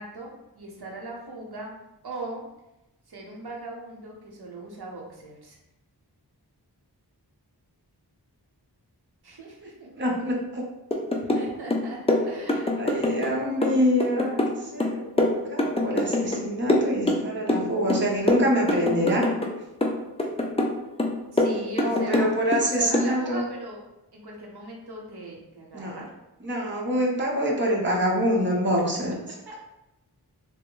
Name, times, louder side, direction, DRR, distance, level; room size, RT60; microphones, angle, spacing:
voice 1, 0.0-1.8 2.0-2.4 3.1-5.6 9.2-10.1 11.2-12.7 21.3-22.3 22.8-23.8 24.1-26.1 29.5-29.6, right 2 dB, 70° right, -1 dB, 0.8 m, -39 dB
voice 2, 10.0-10.6 12.7-19.3 21.7-23.4 25.7-26.1 26.4-29.1, equal, 30° right, -3 dB, 0.7 m, -26 dB
sound 1, 10.9-11.5 11.7-13.3 13.6-16.4 16.7-17.6 17.9-19.5 19.8-20.7 21.0-22.6 22.9-23.1, left 2 dB, 15° left, 0.4 m, -24 dB
3.4 x 2.0 x 3.7 m, 0.94 s
wide cardioid pair, 55°, 40 cm